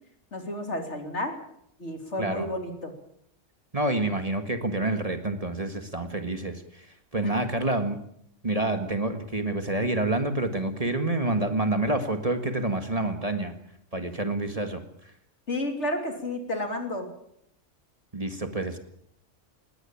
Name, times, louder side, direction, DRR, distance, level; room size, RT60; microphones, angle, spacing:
voice 1, 0.3-1.4 1.8-2.9 7.2-7.3 15.5-17.1, left 1 dB, 65° left, 5 dB, 3.4 m, -31 dB
voice 2, 3.7-6.9 7.1-8.0 8.4-13.5 13.9-14.8 18.1-18.8, right 2 dB, 30° right, 7 dB, 1.8 m, -28 dB
20.5 x 17.5 x 8.7 m, 0.73 s
omnidirectional pair, 1.3 m